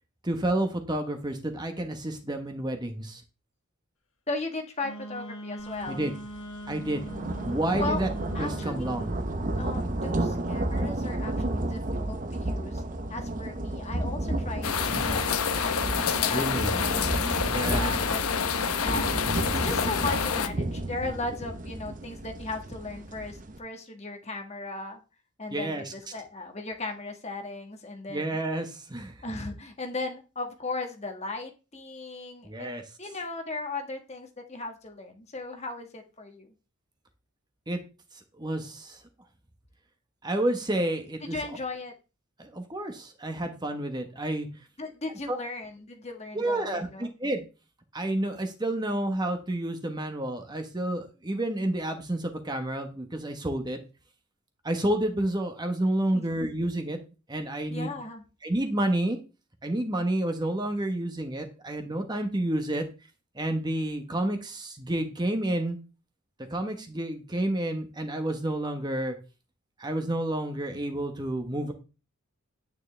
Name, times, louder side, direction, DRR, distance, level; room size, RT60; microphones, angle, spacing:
voice 1, 0.2-3.2 5.9-6.1 6.7-7.0 7.4-8.1 8.4-9.1 14.9-15.1 16.3-16.7 17.4-17.9 25.5-25.9 28.1-29.1 32.4-32.8 37.7-37.8 38.4-39.0 40.2-41.4 42.4-44.5 45.3-45.4 46.3-47.4 47.9-53.8 54.6-57.0 57.3-58.0 58.4-59.2 59.6-62.8 63.3-65.8 66.5-69.1 69.8-71.7, right 1 dB, 20° right, 5 dB, 1.2 m, -30 dB
voice 2, 4.3-6.1 7.8-8.0 8.3-9.0 9.6-11.8 12.1-12.8 13.1-15.2 15.6-15.9 16.2-17.3 17.7-18.2 18.7-25.0 25.4-28.4 29.2-36.5 41.2-41.9 44.8-47.1 56.1-56.2 57.7-58.2, left 3 dB, 30° left, 4 dB, 1.5 m, -37 dB
Wind instrument woodwind instrument, 4.8-9.2, right 1 dB, 65° left, 1.3 m, -41 dB
sound 1, 5.8-5.9 6.3-23.6, right 1 dB, 35° right, 0.9 m, -32 dB
sound 2, 14.6-20.5, left 6 dB, 90° left, 0.9 m, -27 dB
9.5 x 9.3 x 3.3 m, 0.32 s
head